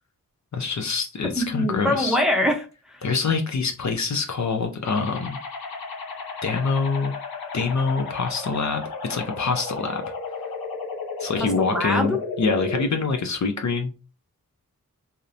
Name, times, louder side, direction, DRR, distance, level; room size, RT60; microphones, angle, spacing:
voice 1, 0.5-2.2 3.0-5.4 6.4-7.1 7.5-8.8 9.1-10.0 11.2-13.9, left 4 dB, 55° left, 5 dB, 0.5 m, -25 dB
voice 2, 1.4-3.0 11.4-12.2, left 1 dB, ahead, 2 dB, 0.6 m, -24 dB
sound 1, 4.8-12.8, left 3 dB, 90° left, 0.7 m, -33 dB
2.7 x 2.0 x 2.5 m, 0.33 s
cardioid pair, 45°, 35 cm